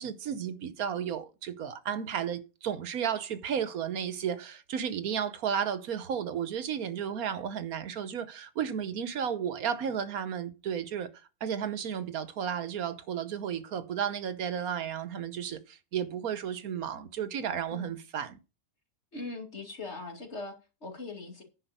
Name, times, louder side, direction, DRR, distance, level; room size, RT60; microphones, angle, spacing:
voice 1, 0.0-11.1 11.4-18.4, right 8 dB, 75° right, 1.4 m, -33 dB
voice 2, 19.1-20.5 20.8-21.4, left 3 dB, 45° left, 2.7 m, -40 dB
10.0 x 5.0 x 6.7 m
omnidirectional pair, 1.6 m